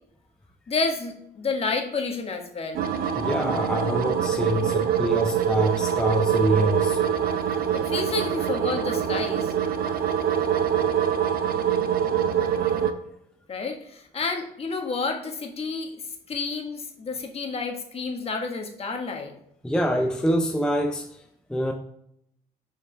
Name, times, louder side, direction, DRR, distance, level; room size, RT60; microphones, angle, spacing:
voice 1, 0.7-2.8 7.7-9.5 13.5-15.9 16.3-19.3, left 4 dB, 35° left, 1.3 m, -30 dB
sound 1, 2.7-12.9, right 8 dB, 60° right, 0.7 m, -24 dB
voice 2, 3.2-7.0 19.6-21.2 21.5-21.7, equal, 5° left, 0.6 m, -25 dB
6.4 x 4.7 x 3.4 m
cardioid pair, 110°, 17 cm